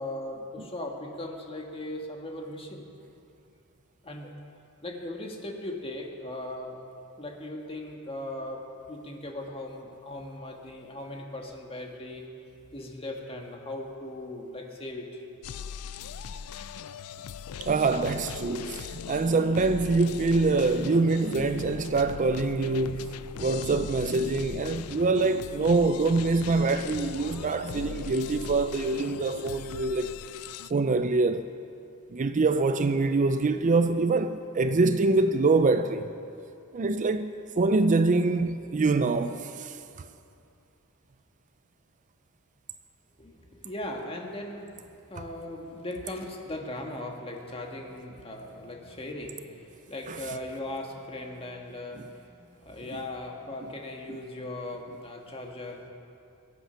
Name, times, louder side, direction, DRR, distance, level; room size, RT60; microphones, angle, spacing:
voice 1, 0.0-2.8 4.0-4.3 4.8-6.8 7.2-8.6 8.9-12.2 12.7-15.2 43.2-44.8 45.1-55.9, left 1 dB, 25° left, 1.5 m, -38 dB
sound 1, 15.4-30.7, left 7 dB, 75° left, 0.4 m, -39 dB
voice 2, 17.6-30.1 30.7-31.5 32.1-36.1 36.7-39.8 50.1-50.2, right 3 dB, 35° right, 0.4 m, -25 dB
22.0 x 8.4 x 5.6 m
head